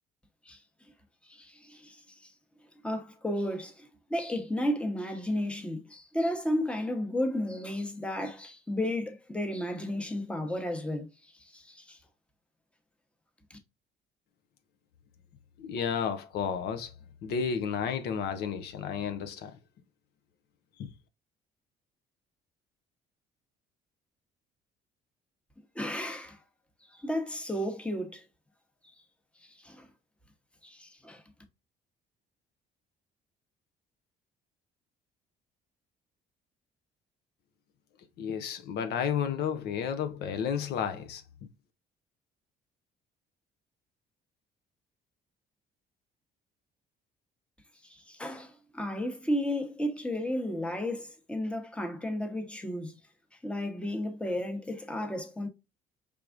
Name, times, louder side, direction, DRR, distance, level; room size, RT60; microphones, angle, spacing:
voice 1, 1.3-2.0 2.8-11.1 11.5-12.0 13.5-13.6 25.7-26.4 26.9-28.2 29.6-29.9 30.6-31.2 48.1-53.0 53.4-55.5, left 1 dB, 5° left, 0.9 m, -33 dB
voice 2, 15.6-16.9 17.2-19.6 20.8-20.9 38.2-41.2, left 7 dB, 75° left, 0.6 m, -32 dB
4.6 x 3.5 x 2.5 m
cardioid pair, 110°, 17 cm